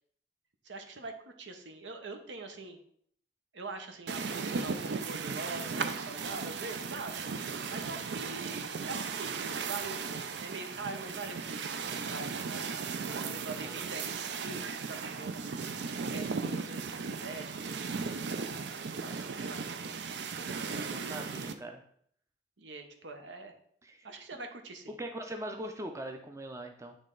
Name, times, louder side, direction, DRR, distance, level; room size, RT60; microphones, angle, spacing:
voice 1, 0.6-1.1 1.4-2.8 3.5-7.2 7.7-10.0 10.4-12.7 13.2-15.4 16.1-18.5 18.8-20.0 20.7-21.5 22.6-23.5 24.0-25.0, right 3 dB, 85° right, 6 dB, 0.8 m, -44 dB
sound 1, 4.1-21.5, right 5 dB, 70° right, 0.5 m, -36 dB
voice 2, 13.0-13.3 13.6-13.8 20.5-21.8 23.8-24.1 25.0-27.0, right 1 dB, 15° right, 4 dB, 0.5 m, -42 dB
8.5 x 3.2 x 3.8 m, 0.64 s
head